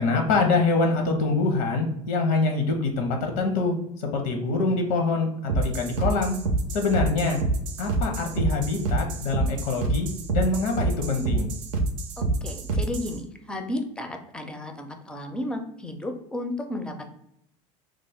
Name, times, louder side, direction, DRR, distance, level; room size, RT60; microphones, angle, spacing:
voice 1, 0.0-6.4 6.7-7.4 7.8-11.5, left 3 dB, 85° left, 4 dB, 0.7 m, -25 dB
sound 1, 5.5-13.2, right 2 dB, 90° right, 0.5 m, -26 dB
voice 2, 12.2-17.0, left 1 dB, 5° left, 5 dB, 0.4 m, -33 dB
3.1 x 2.0 x 3.4 m, 0.76 s
supercardioid pair, 110°, 17 cm